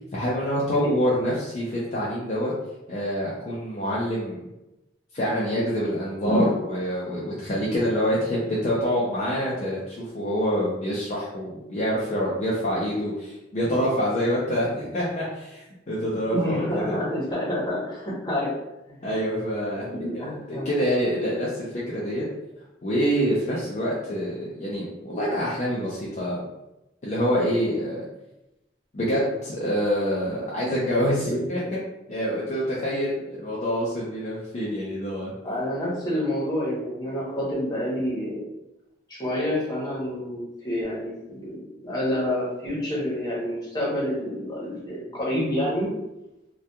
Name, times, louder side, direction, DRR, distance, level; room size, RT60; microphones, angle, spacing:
voice 1, 0.1-2.5 2.9-4.4 5.1-17.0 19.0-22.2 22.8-26.4 27.0-28.0 28.9-31.8 32.1-35.3, equal, 40° left, -7 dB, 0.4 m, -26 dB
voice 2, 16.3-18.5 18.9-19.1 20.2-20.7 23.5-23.6 35.4-38.4 39.1-45.9, equal, 20° left, -7 dB, 0.9 m, -28 dB
2.8 x 2.3 x 2.2 m, 0.94 s
head